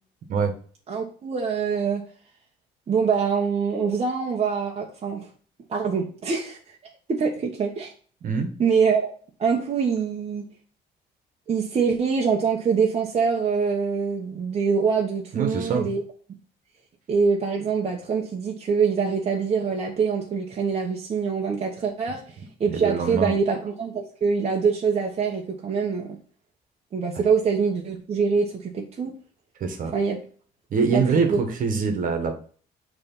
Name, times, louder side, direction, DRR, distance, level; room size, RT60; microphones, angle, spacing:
voice 1, 0.9-2.0 2.9-5.3 5.7-6.6 7.1-7.9 8.6-9.1 9.4-10.4 11.5-16.0 17.1-22.2 22.6-26.2 26.9-29.1 29.9-30.2 30.9-31.0 31.3-31.4, right 5 dB, 40° right, 0 dB, 1.2 m, -24 dB
voice 2, 15.3-15.9 22.7-23.3 29.6-29.9 30.7-32.4, right 5 dB, 55° right, 5 dB, 1.6 m, -24 dB
6.7 x 3.5 x 5.5 m, 0.43 s
cardioid pair, 110°, 17 cm